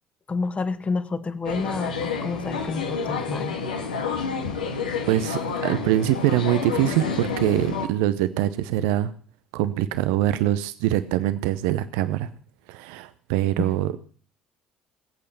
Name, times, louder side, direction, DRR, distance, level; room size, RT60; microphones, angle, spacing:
voice 1, 0.3-3.6 4.3-4.4 13.6-13.7, left 4 dB, 30° left, 10 dB, 1.7 m, -29 dB
sound 1, 1.4-7.9, left 5 dB, 85° left, 1.8 m, -29 dB
voice 2, 5.1-9.1 9.5-12.3 12.7-14.0, right 13 dB, 70° right, 13 dB, 0.7 m, -24 dB
20.5 x 8.5 x 7.1 m, 0.43 s
figure-of-eight pair, 55°, 4 cm